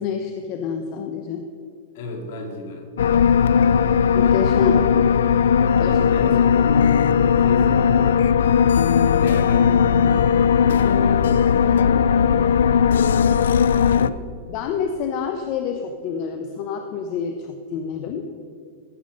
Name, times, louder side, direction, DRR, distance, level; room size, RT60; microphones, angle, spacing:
voice 1, 0.0-1.5 4.1-4.9 5.8-6.0 14.5-18.3, left 6 dB, 45° left, 5 dB, 0.8 m, -27 dB
voice 2, 1.9-2.9 5.9-14.2, left 2 dB, 65° left, 2 dB, 2.4 m, -34 dB
sound 1, 3.0-14.1, left 7 dB, 90° left, 0.3 m, -17 dB
14.5 x 6.8 x 5.2 m, 2.2 s
hypercardioid pair, 135°, 0 cm